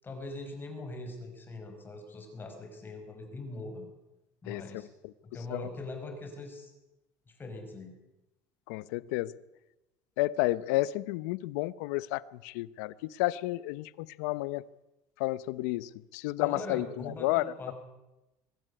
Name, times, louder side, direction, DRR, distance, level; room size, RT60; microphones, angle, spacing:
voice 1, 0.0-3.9 4.4-4.9 5.2-6.7 7.3-7.9 16.4-17.7, left 2 dB, 25° left, 4 dB, 5.2 m, -42 dB
voice 2, 8.7-9.4 10.2-14.6 15.2-17.7, left 18 dB, 90° left, 19 dB, 0.7 m, -31 dB
22.5 x 12.5 x 9.8 m, 1.0 s
cardioid pair, 115°, 9 cm